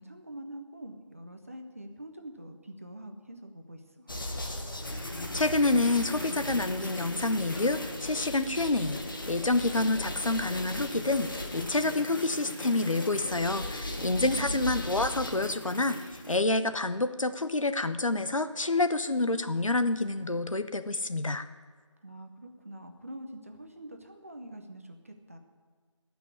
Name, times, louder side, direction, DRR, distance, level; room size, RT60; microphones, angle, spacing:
voice 1, 0.0-4.1 14.1-14.9 22.0-25.4, right 1 dB, 25° right, 5 dB, 0.8 m, -44 dB
sound 1, 4.1-16.4, left 1 dB, 40° left, 1.3 m, -37 dB
voice 2, 4.9-9.0 9.3-21.4, left 2 dB, 80° left, 11 dB, 0.9 m, -28 dB
14.5 x 6.2 x 9.8 m, 1.5 s
figure-of-eight pair, 170°, 16 cm